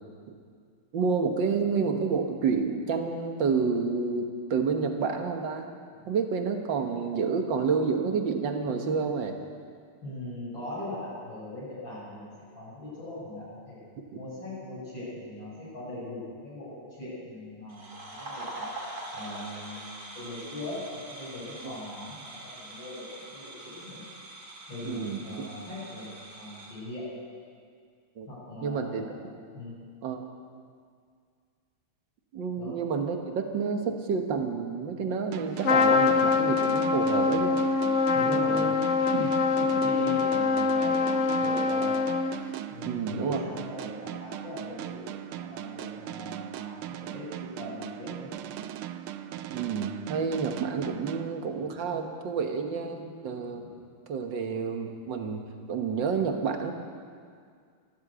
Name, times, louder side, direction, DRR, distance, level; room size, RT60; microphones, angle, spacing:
voice 1, 0.9-5.7 6.1-9.4 21.6-21.7 24.8-25.5 28.2-28.3 28.6-29.1 30.0-30.3 32.3-37.6 38.2-38.7 39.1-39.7 42.9-43.4 49.5-53.6 54.1-56.7, right 5 dB, 60° right, 4 dB, 2.0 m, -29 dB
voice 2, 10.0-13.8 14.1-18.7 19.1-24.0 24.7-27.2 28.3-29.1 29.5-29.7 32.6-32.8 38.1-38.9 39.7-41.9 42.7-45.1 45.3-48.4 53.6-53.7, left 2 dB, 60° left, -10 dB, 6.3 m, -40 dB
sound 1, 17.7-26.8, right 2 dB, 45° right, 3.1 m, -43 dB
sound 2, 35.3-51.9, right 11 dB, 80° right, 1.5 m, -39 dB
Trumpet, 35.6-42.6, left 4 dB, 85° left, 0.6 m, -24 dB
14.0 x 12.5 x 8.1 m, 2.1 s
omnidirectional pair, 2.4 m